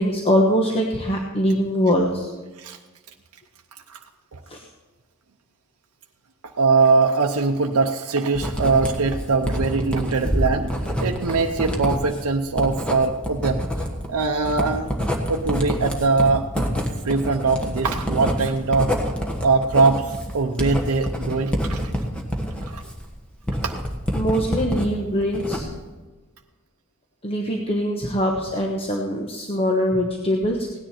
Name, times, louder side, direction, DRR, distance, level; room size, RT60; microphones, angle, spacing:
voice 1, 0.0-2.3 4.5-4.6 24.1-25.7 27.2-30.8, equal, 25° left, 0 dB, 1.2 m, -22 dB
voice 2, 6.4-13.6 14.1-14.9 15.3-16.5 17.0-18.9 19.4-21.9 22.6-22.8 23.6-23.8, right 4 dB, 85° right, 2 dB, 0.7 m, -22 dB
Writing, 8.3-24.9 25.2-25.9, equal, 5° left, 1.5 m, -27 dB
17.0 x 10.0 x 4.3 m, 1.2 s
head